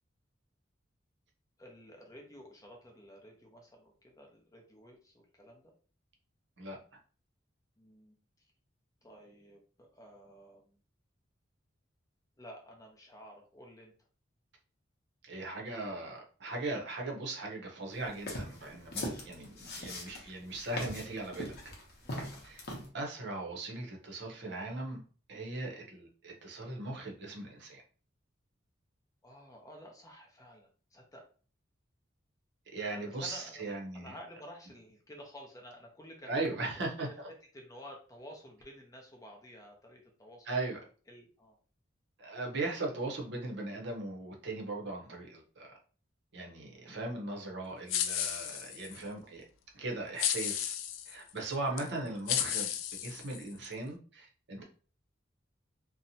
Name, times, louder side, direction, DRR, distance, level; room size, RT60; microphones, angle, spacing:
voice 1, 1.6-5.7 7.8-8.2 9.0-10.8 12.4-13.9 22.0-22.3 29.2-31.2 32.9-36.7 37.0-37.1 37.5-40.6 41.1-41.6 43.2-43.3 46.6-47.0, equal, 20° left, 0.5 m, -52 dB
voice 2, 15.2-21.5 22.4-22.6 22.9-25.0 25.3-27.8 32.7-34.1 36.3-37.3 40.5-40.8 42.2-45.8 46.3-49.4 49.7-50.7 51.1-52.7 53.0-54.6, right 2 dB, 60° right, 0.7 m, -38 dB
sound 1, 18.1-22.9, left 1 dB, 55° left, 0.7 m, -40 dB
sound 2, 47.9-49.0 50.2-51.1 51.8-51.9 52.3-53.7, left 10 dB, 85° left, 0.3 m, -33 dB
2.7 x 2.1 x 2.6 m
head